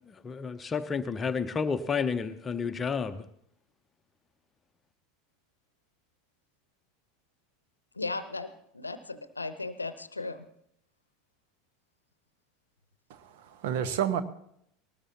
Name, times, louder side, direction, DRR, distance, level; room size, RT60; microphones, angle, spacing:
voice 1, 0.1-3.3, left 5 dB, 20° left, 10 dB, 0.7 m, -31 dB
voice 2, 8.0-10.5, left 3 dB, 85° left, 13 dB, 0.8 m, -36 dB
voice 3, 13.1-14.2, right 9 dB, 60° right, 12 dB, 1.1 m, -30 dB
20.0 x 19.0 x 2.9 m, 0.72 s
figure-of-eight pair, 75°, 0 cm